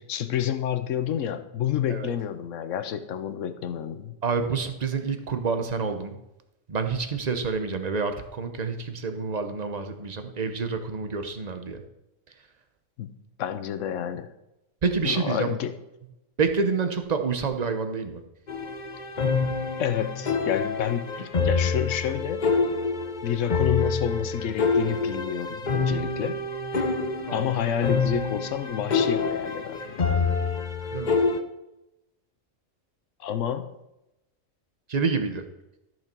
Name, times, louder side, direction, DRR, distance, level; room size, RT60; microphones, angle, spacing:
voice 1, 0.0-4.1 13.0-13.1 13.4-14.3 15.0-15.7 19.8-22.5 23.2-26.4 27.3-30.3 33.2-33.7, left 9 dB, 75° left, 11 dB, 1.1 m, -29 dB
voice 2, 4.2-6.2 6.7-11.8 14.8-15.5 16.4-18.2 27.3-27.5 30.9-31.2 34.9-35.4, right 5 dB, 35° right, 7 dB, 0.9 m, -28 dB
sound 1, 18.5-31.4, left 4 dB, 40° left, 0.8 m, -27 dB
13.5 x 6.1 x 4.5 m, 0.91 s
omnidirectional pair, 1.4 m